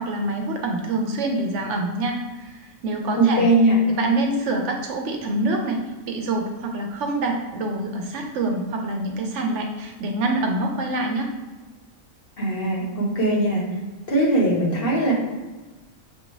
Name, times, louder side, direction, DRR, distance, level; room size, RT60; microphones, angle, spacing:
voice 1, 0.0-3.5 3.9-5.8 6.1-11.3, right 2 dB, 65° right, 2 dB, 0.9 m, -26 dB
voice 2, 3.2-3.8 12.4-13.6 14.1-15.1, right 1 dB, 50° left, -3 dB, 1.0 m, -20 dB
6.4 x 2.6 x 3.0 m, 1.2 s
omnidirectional pair, 1.4 m